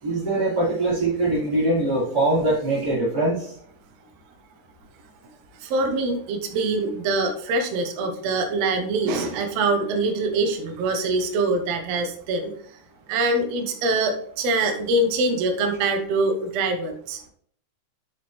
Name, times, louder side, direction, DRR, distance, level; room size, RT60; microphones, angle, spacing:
voice 1, 0.0-3.5, right 2 dB, 30° right, -11 dB, 3.4 m, -22 dB
voice 2, 5.6-12.5 13.1-17.2, right 2 dB, 70° right, 5 dB, 1.7 m, -24 dB
7.1 x 6.1 x 3.1 m, 0.62 s
omnidirectional pair, 3.9 m